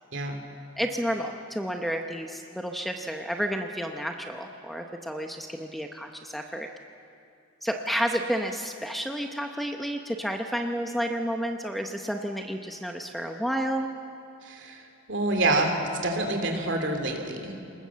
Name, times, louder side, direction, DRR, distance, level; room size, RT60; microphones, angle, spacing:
voice 1, 0.8-6.7 7.6-13.9, equal, ahead, 3 dB, 0.7 m, -31 dB
voice 2, 14.4-17.5, right 2 dB, 55° right, 4 dB, 2.8 m, -27 dB
26.5 x 20.0 x 7.4 m, 2.5 s
head